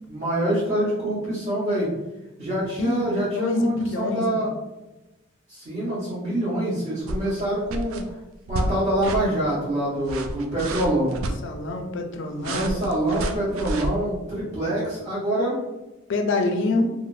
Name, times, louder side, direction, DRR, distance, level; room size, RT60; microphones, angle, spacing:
voice 1, 0.1-1.9 2.4-4.5 5.5-8.2 8.5-11.2 12.4-15.6, right 1 dB, 40° right, -13 dB, 1.2 m, -25 dB
voice 2, 2.8-4.5 11.4-12.8 16.1-16.9, left 2 dB, 60° left, 4 dB, 0.4 m, -26 dB
sound 1, 7.1-7.4 7.7-8.0 8.5-8.7 9.0-9.2 10.0-11.4 12.4-13.9, right 1 dB, 80° right, 0.3 m, -29 dB
3.3 x 2.1 x 2.6 m, 1.0 s
head